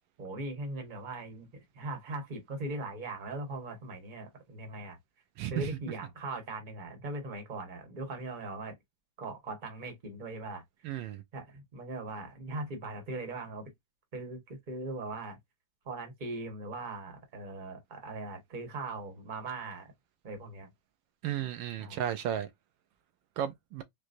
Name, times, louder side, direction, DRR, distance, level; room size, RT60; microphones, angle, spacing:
voice 1, 0.2-5.0 5.5-8.7 9.2-10.6 11.3-13.7 14.1-15.4 15.8-19.9 20.2-20.7 21.8-22.0, right 2 dB, 30° right, 1.1 m, -40 dB
voice 2, 5.4-5.7 10.8-11.2 21.2-22.5 23.4-23.8, right 10 dB, 80° right, 1.3 m, -34 dB
4.6 x 2.2 x 2.5 m
omnidirectional pair, 2.1 m